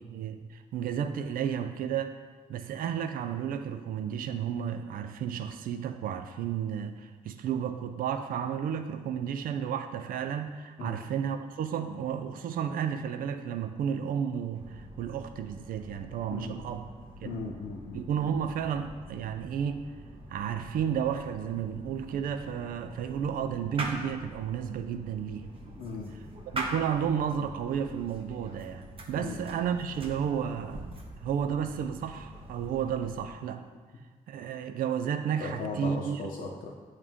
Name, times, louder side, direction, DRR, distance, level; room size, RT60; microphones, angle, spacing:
voice 1, 0.0-2.2 2.5-16.9 17.2-17.4 17.9-19.8 20.3-25.5 26.5-33.6 34.3-36.2, right 8 dB, 85° right, 9 dB, 0.4 m, -32 dB
sound 1, 14.5-33.3, right 1 dB, 40° right, 1.1 m, -44 dB
voice 2, 17.2-18.0 25.8-26.1 29.2-29.4 35.4-36.7, left 3 dB, 75° left, -2 dB, 0.7 m, -37 dB
8.8 x 3.2 x 3.5 m, 1.4 s
cardioid pair, 70°, 14 cm